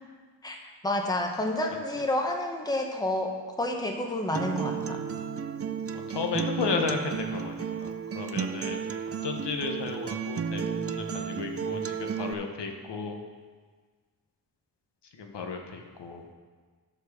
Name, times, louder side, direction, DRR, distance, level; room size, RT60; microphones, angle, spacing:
voice 1, 0.8-5.0, left 1 dB, 10° left, 2 dB, 0.9 m, -29 dB
Acoustic guitar, 4.3-12.3, right 7 dB, 35° right, 0.4 m, -33 dB
voice 2, 6.1-8.8 9.2-13.2 15.2-16.2, left 5 dB, 90° left, 3 dB, 1.1 m, -34 dB
9.9 x 4.6 x 6.4 m, 1.5 s
wide cardioid pair, 140°, 41 cm